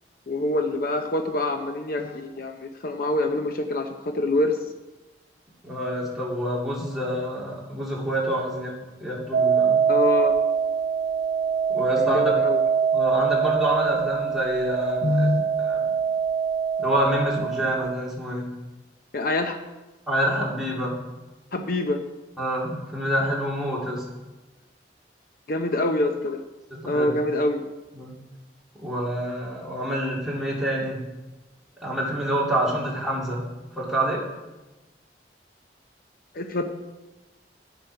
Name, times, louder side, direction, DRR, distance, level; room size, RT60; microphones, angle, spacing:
voice 1, 0.3-4.6 9.9-10.3 12.0-12.6 15.0-15.5 19.1-19.6 21.5-22.0 25.5-26.4 26.9-27.6 36.3-36.6, left 2 dB, 55° left, 6 dB, 0.7 m, -25 dB
voice 2, 5.6-8.7 9.0-9.8 11.7-12.3 12.9-15.3 15.6-15.8 16.8-18.5 20.1-21.0 22.4-24.0 26.7-27.1 27.9-28.1 28.8-31.0 31.8-33.4 33.8-34.2, right 1 dB, ahead, -6 dB, 2.8 m, -27 dB
sound 1, 9.3-18.0, right 7 dB, 75° right, 1.0 m, -24 dB
9.9 x 7.7 x 5.7 m, 1.1 s
head